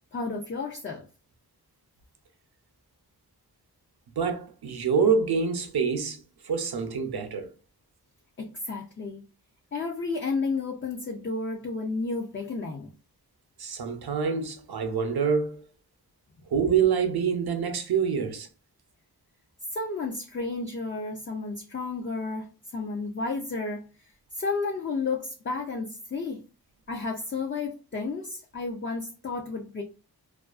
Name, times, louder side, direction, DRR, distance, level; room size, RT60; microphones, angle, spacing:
voice 1, 0.1-1.0 8.4-9.2 9.7-12.9 19.7-24.1 24.3-26.4 26.9-29.8, left 3 dB, 30° left, 0.4 m, -32 dB
voice 2, 4.2-7.5 13.6-15.6 16.5-18.5, right 6 dB, 70° right, 0.6 m, -26 dB
2.4 x 2.3 x 2.3 m
wide cardioid pair, 45°, 39 cm